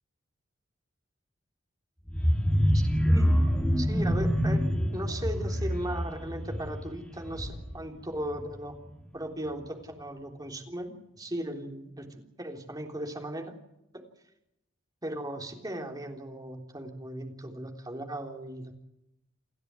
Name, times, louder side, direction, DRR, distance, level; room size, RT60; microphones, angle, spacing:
sound 1, 2.1-7.8 8.2-8.5 8.8-8.9, equal, 5° left, 3.4 m, -26 dB
voice 1, 2.7-3.3 3.8-4.7 4.9-8.8 9.1-13.5 15.0-18.7, right 1 dB, 20° right, 2 dB, 3.6 m, -37 dB
29.5 x 12.0 x 9.7 m, 0.85 s
head